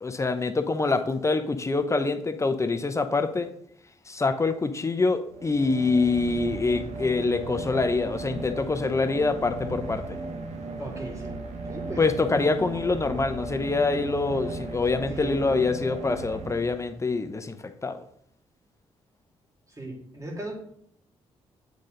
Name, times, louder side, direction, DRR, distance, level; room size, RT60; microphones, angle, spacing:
voice 1, 0.0-3.5 4.1-10.2 12.0-18.0, left 3 dB, 25° left, 8 dB, 0.7 m, -25 dB
sound 1, 5.3-17.2, right 3 dB, 80° right, 0.9 m, -36 dB
voice 2, 10.8-11.4 11.6-12.0 15.1-15.6 19.7-20.5, right 1 dB, 25° right, 0 dB, 2.5 m, -37 dB
8.2 x 4.0 x 3.9 m, 0.68 s
cardioid pair, 70°, 12 cm